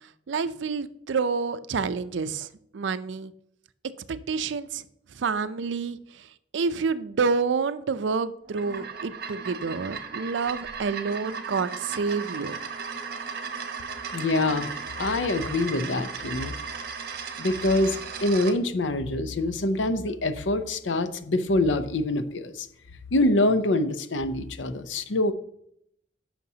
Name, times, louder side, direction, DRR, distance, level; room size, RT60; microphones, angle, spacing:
voice 1, 0.3-2.5 2.7-3.3 4.1-4.8 5.1-6.3 6.5-12.6, right 5 dB, 75° right, 14 dB, 0.4 m, -28 dB
sound 1, 8.4-18.6, right 5 dB, 55° right, 0.8 m, -36 dB
voice 2, 14.1-14.7 15.0-16.5 17.4-22.7 23.1-25.3, left 2 dB, 80° left, 12 dB, 0.6 m, -25 dB
9.5 x 5.9 x 2.8 m, 0.72 s
head